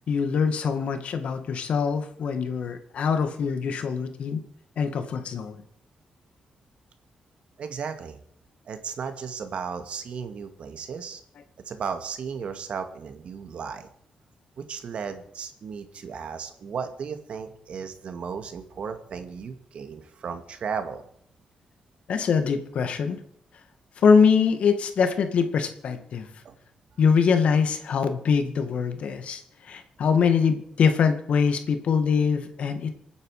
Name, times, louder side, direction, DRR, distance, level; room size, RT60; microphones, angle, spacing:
voice 1, 0.1-4.4 4.8-5.6 22.1-23.2 24.0-26.3 27.0-32.9, left 6 dB, 70° left, 8 dB, 2.1 m, -23 dB
voice 2, 7.6-8.2 8.7-11.2 11.7-13.9 14.6-21.0 26.4-26.6, right 6 dB, 65° right, 8 dB, 2.2 m, -35 dB
27.0 x 9.7 x 5.0 m, 0.68 s
cardioid pair, 95°, 2 cm